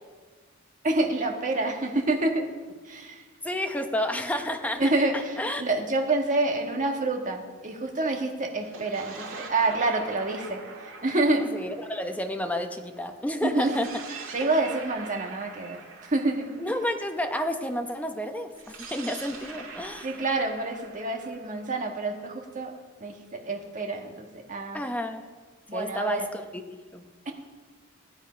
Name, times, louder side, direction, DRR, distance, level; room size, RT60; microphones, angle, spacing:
voice 1, 0.8-2.5 2.8-3.2 4.8-11.5 13.4-13.7 14.3-16.5 20.0-22.7 23.0-24.8 25.7-26.3 27.2-27.3, right 2 dB, 40° right, 2 dB, 1.6 m, -27 dB
voice 2, 3.4-4.8 5.4-5.6 11.5-13.9 14.4-14.5 16.6-20.1 24.7-25.2 25.7-27.0, left 1 dB, 10° left, 5 dB, 0.8 m, -30 dB
sound 1, 8.6-13.0 13.6-17.5 18.5-22.4, right 4 dB, 85° right, 2.1 m, -43 dB
16.0 x 9.6 x 5.1 m, 1.4 s
head